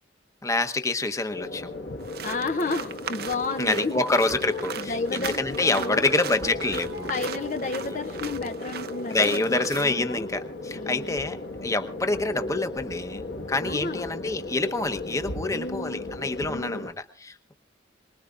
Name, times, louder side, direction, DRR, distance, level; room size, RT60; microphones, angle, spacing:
voice 1, 0.4-1.7 3.6-7.2 9.1-11.4 11.6-17.5, left 2 dB, 15° left, 7 dB, 1.0 m, -27 dB
sound 1, 1.3-16.9, left 2 dB, 75° left, 1.6 m, -36 dB
sound 2, 2.0-9.9, right 7 dB, 55° right, 0.7 m, -38 dB
voice 2, 2.2-4.0 4.5-6.0 7.1-10.3 10.7-11.2 13.6-14.1 15.5-16.0 16.5-16.9, left 3 dB, 45° left, 7 dB, 0.6 m, -32 dB
Guitar, 5.3-12.3 12.6-12.7, right 2 dB, 85° right, 1.7 m, -46 dB
23.5 x 21.0 x 2.5 m, 0.43 s
head